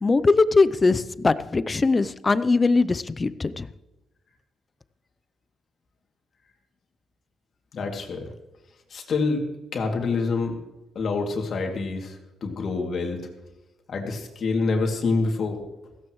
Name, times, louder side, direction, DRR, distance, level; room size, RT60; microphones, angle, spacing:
voice 1, 0.0-3.7, left 3 dB, 25° left, 15 dB, 0.6 m, -21 dB
voice 2, 7.7-8.3 8.9-10.6 10.9-13.3 13.9-15.6, left 3 dB, 55° left, 2 dB, 2.6 m, -27 dB
16.0 x 15.5 x 3.1 m, 1.1 s
cardioid pair, 90°, 0 cm